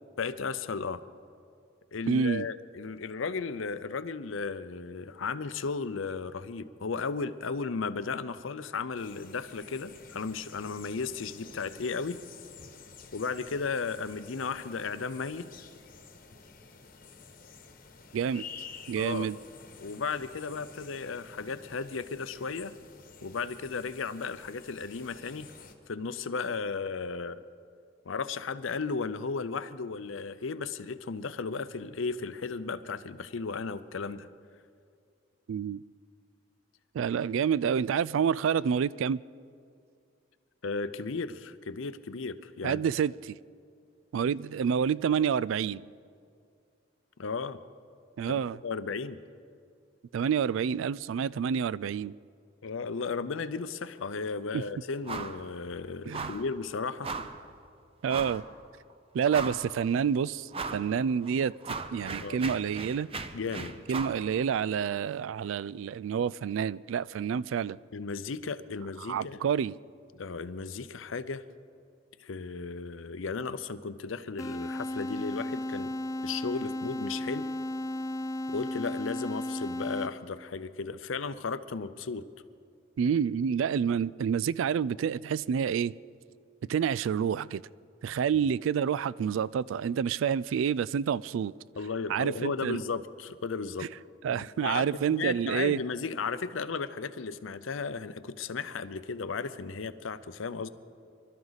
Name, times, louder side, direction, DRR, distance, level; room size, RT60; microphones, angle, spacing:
voice 1, 0.2-1.0 1.9-12.2 13.1-15.5 19.0-19.3 19.8-22.7 23.2-25.5 25.9-27.4 28.1-34.3 40.6-42.8 47.2-47.6 48.3-49.2 52.6-57.1 62.2-62.4 63.3-63.8 67.9-69.4 70.1-71.4 72.2-75.9 76.2-77.5 78.5-82.3 91.8-93.9 94.3-100.7, left 4 dB, 80° left, 0.6 m, -35 dB
voice 2, 2.1-2.5 18.1-18.5 18.9-19.4 35.5-35.8 36.9-39.2 42.6-43.3 44.1-45.8 48.2-48.6 50.1-52.1 54.5-54.6 56.1-56.3 58.0-58.4 59.1-61.5 61.9-63.1 63.9-67.8 69.1-69.7 83.0-85.9 86.7-87.6 88.0-91.5 92.1-92.8 94.2-95.8, right 7 dB, 80° right, 0.3 m, -28 dB
sound 1, 9.0-25.7, left 5 dB, 45° left, 1.1 m, -50 dB
sound 2, 55.1-55.4 55.7-55.8 56.1-56.5 57.0-57.4 58.1-58.4 58.9-59.0 59.3-59.8 60.5-60.9 61.2-64.2, right 4 dB, 30° right, 0.6 m, -37 dB
sound 3, 74.4-80.4, left 1 dB, 15° left, 0.3 m, -34 dB
24.5 x 12.5 x 4.1 m
head